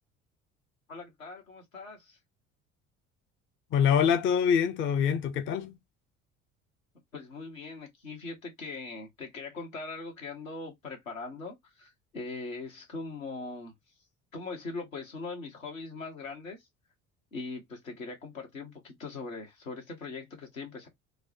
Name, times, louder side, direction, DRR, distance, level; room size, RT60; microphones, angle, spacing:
voice 1, 0.9-2.2 7.1-13.7 14.3-16.6 17.3-20.9, left 3 dB, 80° left, 1.3 m, -41 dB
voice 2, 3.7-5.7, left 7 dB, 30° left, 0.5 m, -25 dB
4.7 x 2.1 x 2.6 m
figure-of-eight pair, 55°, 40 cm